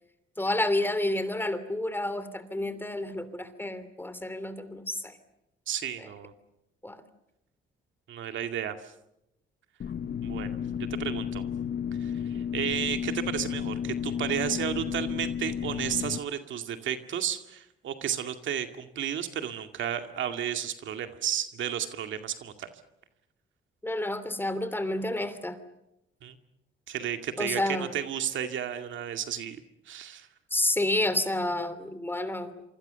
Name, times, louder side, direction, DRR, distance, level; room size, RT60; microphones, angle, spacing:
voice 1, 0.4-5.2 6.8-7.0 23.8-25.6 27.4-27.9 30.5-32.8, left 1 dB, 10° left, 12 dB, 2.9 m, -30 dB
voice 2, 5.7-6.3 8.1-8.9 10.2-10.6 10.9-11.4 12.0-22.7 26.2-26.4 26.9-29.6 29.9-30.3, right 9 dB, 75° right, 7 dB, 2.3 m, -33 dB
sound 1, 9.8-16.2, left 8 dB, 55° left, 1.3 m, -32 dB
27.5 x 25.0 x 7.0 m, 0.87 s
cardioid pair, 90°, 20 cm